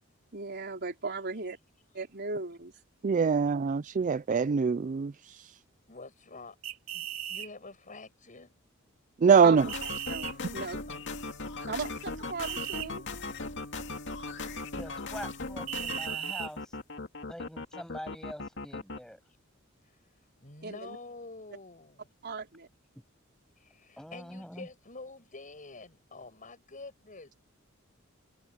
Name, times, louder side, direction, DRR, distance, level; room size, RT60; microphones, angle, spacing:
voice 1, 0.3-1.6 1.9-2.7 9.4-9.6 10.1-10.8 11.7-13.0 20.6-21.0 22.2-22.7, right 4 dB, 55° right, 4.4 m, -37 dB
voice 2, 3.0-5.1 9.2-9.6, right 6 dB, 40° right, 0.4 m, -23 dB
voice 3, 5.9-6.6 6.9-8.5 10.9-11.0 19.8-20.0 20.4-22.1 23.6-27.3, left 3 dB, 40° left, 6.5 m, -47 dB
sound 1, 6.6-7.5 9.7-10.3 12.4-12.9 15.7-16.5, right 11 dB, 85° right, 3.3 m, -36 dB
sound 2, 9.6-19.0, left 3 dB, 60° left, 2.4 m, -38 dB
voice 4, 14.8-16.8 17.3-19.2 24.0-24.7, equal, 5° left, 7.2 m, -44 dB
head